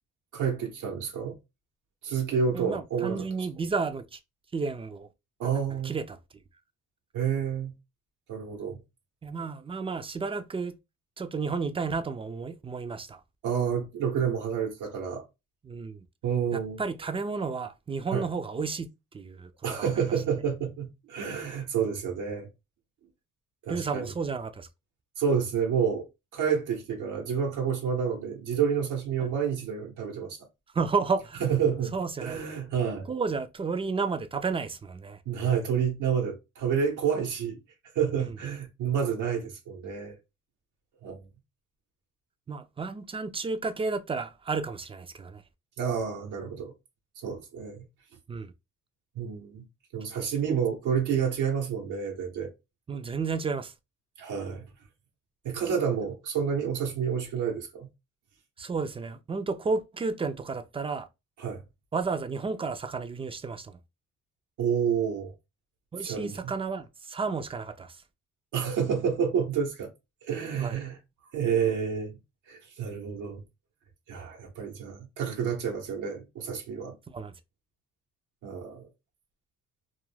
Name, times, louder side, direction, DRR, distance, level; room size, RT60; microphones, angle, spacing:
voice 1, 0.3-1.4 2.0-3.3 5.4-6.0 7.1-7.7 8.3-8.8 13.4-15.2 16.2-16.8 18.1-18.2 19.6-22.5 23.7-24.1 25.2-26.1 26.3-30.4 31.4-33.1 35.3-37.6 37.9-40.2 41.0-41.2 45.8-46.7 47.2-47.8 49.1-49.6 49.9-52.5 54.2-54.7 55.4-57.9 61.4-61.6 64.6-65.3 66.0-66.5 68.5-69.9 70.2-71.0 71.3-72.1 72.5-73.4 74.1-77.0 78.4-78.9, right 7 dB, 90° right, 0.9 m, -29 dB
voice 2, 2.5-4.2 4.5-5.1 5.8-6.2 9.2-10.8 11.2-13.2 15.6-16.0 16.5-18.9 19.1-19.5 19.8-20.0 23.7-24.7 30.7-31.4 31.9-32.4 33.1-35.2 38.1-38.3 42.5-45.4 48.3-48.5 50.5-50.6 52.9-53.7 58.6-61.1 61.9-63.8 65.9-68.0 70.6-70.8 77.1-77.3, right 4 dB, 20° right, 0.3 m, -32 dB
2.3 x 2.1 x 3.2 m
cardioid pair, 90°, 30 cm